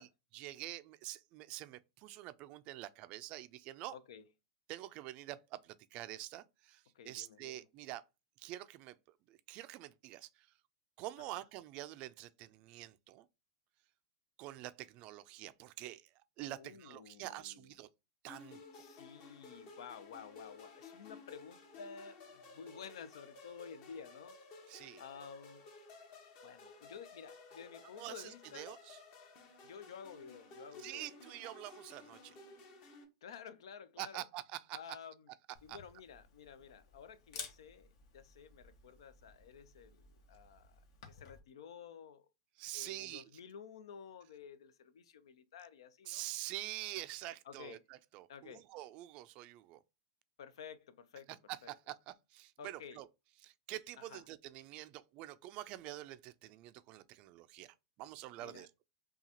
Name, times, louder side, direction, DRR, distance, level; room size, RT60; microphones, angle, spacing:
voice 1, 0.0-3.9 4.7-8.0 8.4-9.0 9.3-10.5 11.0-13.3 14.4-17.9 18.2-18.6 24.7-25.0 28.0-29.0 30.8-32.4 34.0-34.8 35.7-35.8 42.6-43.2 46.1-49.8 51.5-53.1 53.4-58.7, right 15 dB, 40° right, 0.3 m, -46 dB
voice 2, 3.9-4.2 6.9-7.6 11.3-11.4 16.6-17.7 18.7-22.2 22.5-24.4 25.0-25.6 26.4-28.8 29.6-31.1 33.2-34.2 34.7-35.3 35.6-37.9 38.1-40.8 41.1-42.3 42.7-46.2 47.5-47.8 48.3-48.6 50.4-51.3 51.6-51.7 52.6-53.0 54.0-54.2 58.4-58.7, left 7 dB, 80° left, 0.6 m, -52 dB
sound 1, 18.3-33.0, left 4 dB, 45° left, 1.1 m, -55 dB
Camera, 35.5-41.4, left 6 dB, 65° left, 1.2 m, -54 dB
5.6 x 2.3 x 2.8 m
supercardioid pair, 140°, 3 cm